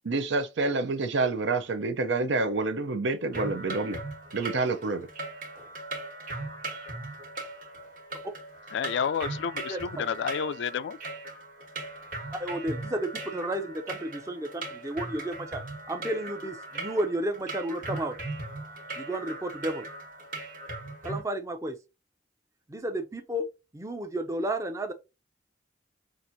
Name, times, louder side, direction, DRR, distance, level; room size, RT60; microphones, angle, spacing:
voice 1, 0.0-4.0 4.3-5.1, right 3 dB, 75° right, 0.6 m, -28 dB
sound 1, 3.3-21.2, right 2 dB, 45° right, 1.3 m, -39 dB
voice 2, 8.7-11.0, left 7 dB, 70° left, 0.3 m, -30 dB
voice 3, 12.4-15.6 15.9-18.2 19.0-19.9 21.0-21.8 22.7-23.5 23.7-24.9, right 1 dB, 15° right, 0.5 m, -32 dB
5.8 x 2.6 x 2.6 m
head